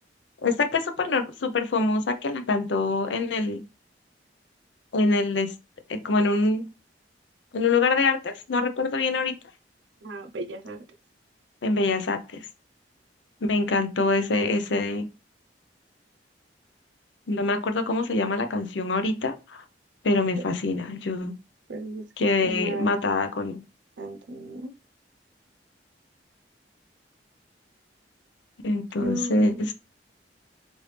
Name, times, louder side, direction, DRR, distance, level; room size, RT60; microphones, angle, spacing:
voice 1, 0.4-3.6 4.9-5.5 5.9-6.7 7.5-9.3 11.6-12.5 13.4-15.1 17.3-19.6 20.0-21.3 22.2-23.6 28.6-29.7, left 3 dB, 85° left, 0.6 m, -25 dB
voice 2, 10.0-10.8 20.4-20.5 21.7-22.1 22.4-22.9 24.0-24.7 29.0-29.7, right 2 dB, 80° right, 0.5 m, -34 dB
3.2 x 2.6 x 3.2 m
head